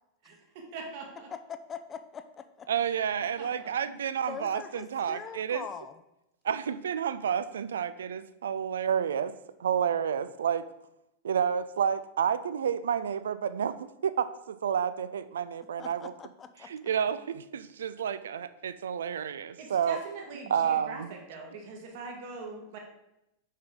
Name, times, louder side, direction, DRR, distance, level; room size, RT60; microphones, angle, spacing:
voice 1, 0.7-1.3 3.2-3.7 19.6-22.8, right 3 dB, 50° right, 1 dB, 1.4 m, -42 dB
voice 2, 1.3-2.7 4.3-6.0 15.8-16.9, left 7 dB, 25° left, 10 dB, 0.5 m, -42 dB
voice 3, 2.7-5.6 6.4-9.3 9.6-10.6 11.2-16.1 16.6-20.0 20.5-21.1, right 8 dB, 65° right, 14 dB, 0.3 m, -30 dB
6.3 x 5.4 x 3.6 m, 0.88 s
figure-of-eight pair, 90°, 0 cm